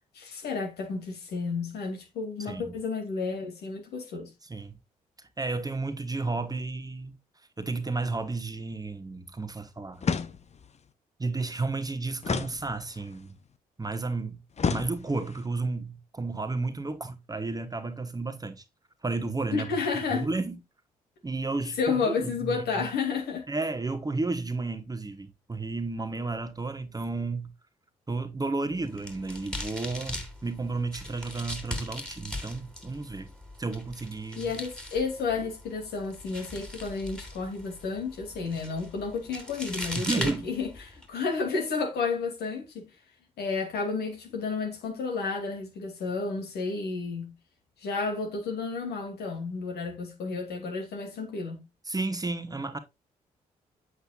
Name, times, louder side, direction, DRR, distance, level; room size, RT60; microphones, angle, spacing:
voice 1, 0.1-4.3 19.5-20.3 21.8-23.5 34.4-42.8 43.4-47.3 47.8-51.6, left 4 dB, 65° left, 2.6 m, -31 dB
voice 2, 4.4-4.7 5.4-7.2 7.6-10.0 11.2-13.3 13.8-14.4 14.7-18.6 19.0-19.7 20.1-20.6 21.2-21.8 22.1-22.8 23.5-27.5 28.1-33.3 33.6-34.5 40.0-40.5 51.9-52.8, right 3 dB, 20° right, 1.4 m, -32 dB
sound 1, 10.0-10.8 12.2-13.2 14.6-15.4, left 6 dB, 35° left, 0.9 m, -31 dB
sound 2, 28.7-41.0, left 1 dB, 5° left, 3.0 m, -40 dB
8.1 x 8.1 x 2.4 m
figure-of-eight pair, 40°, 18 cm